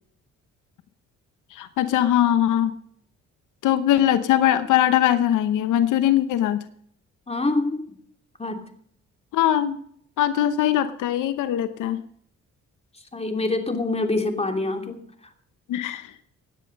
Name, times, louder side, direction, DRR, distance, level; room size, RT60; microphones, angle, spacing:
voice 1, 1.5-2.7 3.6-6.6 9.3-9.8 10.2-12.0 15.7-16.1, left 11 dB, 85° left, 12 dB, 1.0 m, -21 dB
voice 2, 7.3-7.8 8.4-8.6 13.1-15.0, left 2 dB, 20° left, 5 dB, 3.0 m, -25 dB
17.0 x 10.0 x 5.4 m, 0.64 s
cardioid pair, 90°, 30 cm